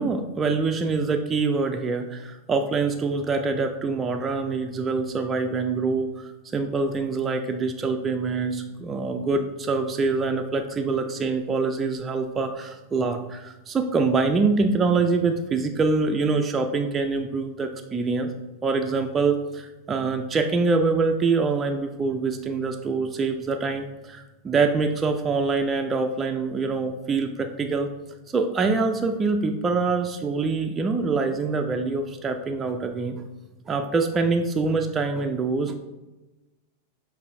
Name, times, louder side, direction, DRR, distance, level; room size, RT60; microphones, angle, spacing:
voice 1, 0.0-18.3 18.6-27.9 28.3-33.2 33.7-35.8, right 4 dB, 20° right, 4 dB, 0.3 m, -25 dB
6.6 x 2.5 x 2.5 m, 1.1 s
figure-of-eight pair, 90°, 0 cm